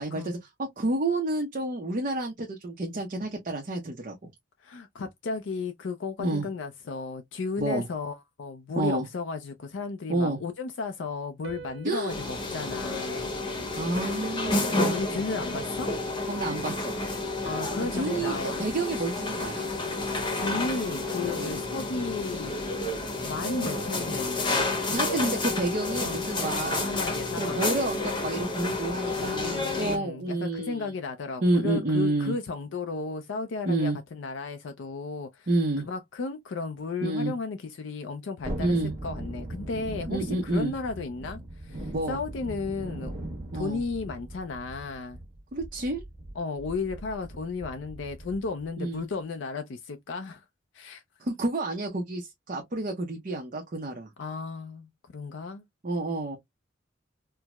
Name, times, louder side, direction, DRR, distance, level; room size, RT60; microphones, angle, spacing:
voice 1, 0.0-4.3 6.2-6.5 7.6-7.9 8.8-9.1 10.1-10.4 11.8-12.1 13.8-14.8 15.1-15.2 16.3-17.0 17.9-19.7 21.3-21.6 24.9-26.9 27.4-30.9 31.4-32.3 33.6-34.0 35.5-35.9 37.0-37.3 38.6-38.9 40.1-40.7 41.9-42.2 43.5-43.8 45.5-46.0 48.8-49.0 51.2-54.1 55.8-56.4, right 2 dB, 45° right, 0.6 m, -29 dB
voice 2, 4.6-13.3 14.7-15.9 17.4-18.6 20.3-22.7 23.2-25.1 26.0-26.2 26.5-27.6 29.2-35.5 35.9-38.8 39.0-43.2 43.5-45.2 46.4-50.5 50.7-51.0 54.2-55.6, left 4 dB, 70° left, 0.4 m, -34 dB
sound 1, 11.4-13.9 14.4-16.2 17.4-19.0 20.4-22.3 23.4-25.8, right 2 dB, 65° right, 1.0 m, -45 dB
sound 2, 12.1-30.0, left 2 dB, 25° left, 0.8 m, -30 dB
Thunderstorm, 38.4-48.7 49.0-49.1, right 1 dB, 15° right, 1.2 m, -40 dB
4.5 x 2.0 x 2.2 m
head